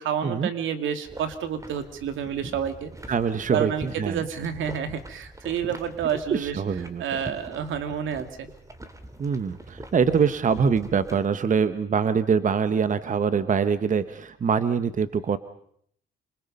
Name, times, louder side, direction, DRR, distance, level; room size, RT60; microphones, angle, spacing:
voice 1, 0.0-2.9 3.5-6.6 7.0-8.5, right 8 dB, 80° right, 9 dB, 2.5 m, -29 dB
sound 1, 1.0-11.3, right 1 dB, 15° right, 2.9 m, -43 dB
voice 2, 3.1-4.2 6.3-7.0 9.2-15.4, right 6 dB, 40° right, 12 dB, 1.1 m, -24 dB
28.0 x 26.0 x 5.5 m, 0.66 s
cardioid pair, 90°, 20 cm